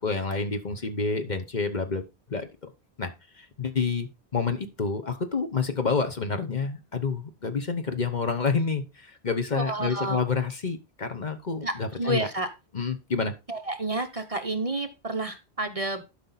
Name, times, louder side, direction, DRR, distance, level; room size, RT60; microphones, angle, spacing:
voice 1, 0.0-2.0 2.3-2.7 3.0-3.1 3.4-12.3 12.7-13.3, left 4 dB, 45° left, 1.1 m, -28 dB
voice 2, 9.5-10.2 11.6-12.5 13.5-16.0, right 2 dB, 35° right, 0.9 m, -30 dB
12.0 x 5.4 x 4.1 m
omnidirectional pair, 1.1 m